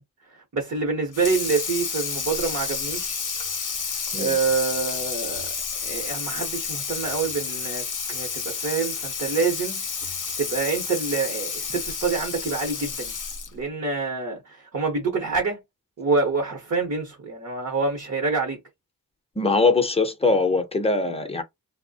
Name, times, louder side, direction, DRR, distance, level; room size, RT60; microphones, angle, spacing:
voice 1, 0.5-3.2 4.2-5.5 5.8-9.9 10.4-13.1 13.5-15.6 16.0-18.6, right 4 dB, 45° right, 0.9 m, -26 dB
Water tap faucet / Sink (filling or washing), 1.1-13.6, left 6 dB, 60° left, 0.6 m, -30 dB
voice 2, 19.4-21.4, left 3 dB, 15° left, 0.6 m, -22 dB
2.9 x 2.1 x 2.7 m
wide cardioid pair, 100°, 36 cm